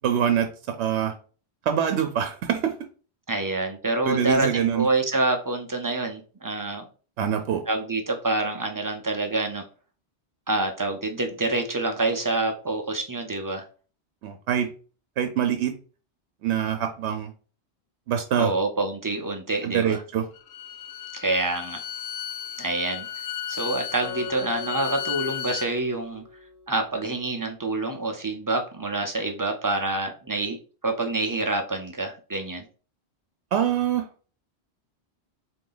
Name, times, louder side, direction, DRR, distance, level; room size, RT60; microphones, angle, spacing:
voice 1, 0.0-0.5 0.8-1.1 1.7-2.8 4.1-4.9 7.2-7.6 14.2-14.7 15.2-15.7 16.4-17.3 18.1-18.5 19.6-20.3 33.5-34.1, right 9 dB, 90° right, 0.9 m, -24 dB
voice 2, 3.3-6.9 7.7-9.6 10.5-13.7 18.3-20.0 21.1-21.8 22.6-23.1 23.5-26.2 26.7-30.6 30.8-32.6, right 2 dB, 35° right, 0.3 m, -27 dB
Bowed string instrument, 20.3-25.7, left 10 dB, 70° left, 0.8 m, -34 dB
Acoustic guitar, 24.0-27.3, left 5 dB, 50° left, 1.2 m, -41 dB
3.8 x 2.6 x 3.8 m
omnidirectional pair, 1.1 m